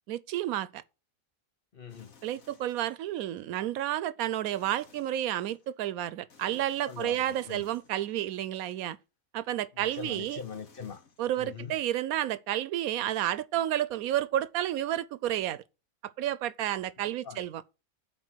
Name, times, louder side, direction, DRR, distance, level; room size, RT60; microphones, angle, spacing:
voice 1, 0.1-0.8 2.2-9.0 9.3-10.4 11.2-15.6 16.0-17.6, right 12 dB, 90° right, 1.1 m, -31 dB
voice 2, 1.7-2.1 6.4-6.6 6.9-7.6 9.7-11.0 11.4-11.7 17.2-17.4, left 6 dB, 45° left, 1.0 m, -42 dB
sound 1, 1.9-3.4 4.5-5.7 6.3-8.9 9.9-11.9, left 4 dB, 75° left, 1.8 m, -60 dB
9.7 x 4.1 x 6.1 m
omnidirectional pair, 1.5 m